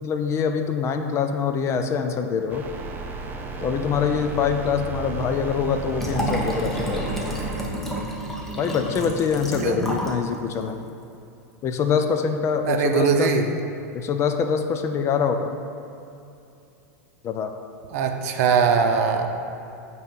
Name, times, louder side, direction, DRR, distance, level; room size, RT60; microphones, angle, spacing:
voice 1, 0.0-2.7 3.6-7.0 8.6-10.8 11.6-13.3 13.9-15.5 17.2-17.5, left 6 dB, 30° left, 6 dB, 0.5 m, -24 dB
sound 1, 2.5-7.6, right 3 dB, 20° right, 0.7 m, -33 dB
Liquid, 6.0-10.2 10.5-10.6, equal, 5° left, 1.0 m, -29 dB
voice 2, 12.6-13.4 17.9-19.3, right 6 dB, 65° right, 5 dB, 0.7 m, -21 dB
8.5 x 3.1 x 5.4 m, 2.7 s
hypercardioid pair, 115°, 9 cm